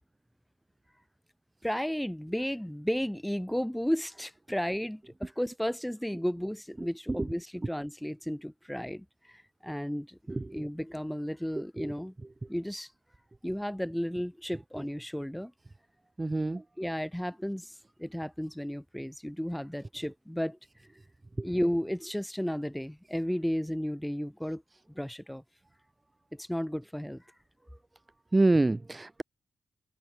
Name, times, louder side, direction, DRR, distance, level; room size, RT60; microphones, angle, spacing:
voice 1, 1.6-10.2 10.5-12.1 12.5-12.9 13.4-15.5 16.8-17.7 18.0-20.6 21.4-24.6 24.9-25.4 26.3-27.2, equal, ahead, 1.2 m, -33 dB
voice 2, 10.3-10.6 11.8-11.9 16.2-16.6 21.4-21.5 28.3-29.2, right 2 dB, 15° right, 0.8 m, -27 dB
wide cardioid pair, 155°, 0 cm